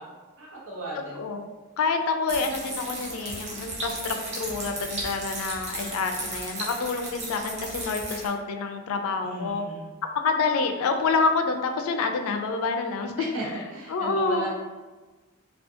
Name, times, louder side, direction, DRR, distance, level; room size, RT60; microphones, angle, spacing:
voice 1, 0.0-1.3 9.2-9.9 13.2-14.5, right 1 dB, 70° right, -5 dB, 0.8 m, -36 dB
voice 2, 1.8-9.7 10.2-13.1 13.4-13.6 13.9-14.5, left 4 dB, 85° left, 5 dB, 0.3 m, -27 dB
sound 1, 2.3-8.3, right 2 dB, 30° right, 0.5 m, -35 dB
2.5 x 2.3 x 2.4 m, 1.3 s
head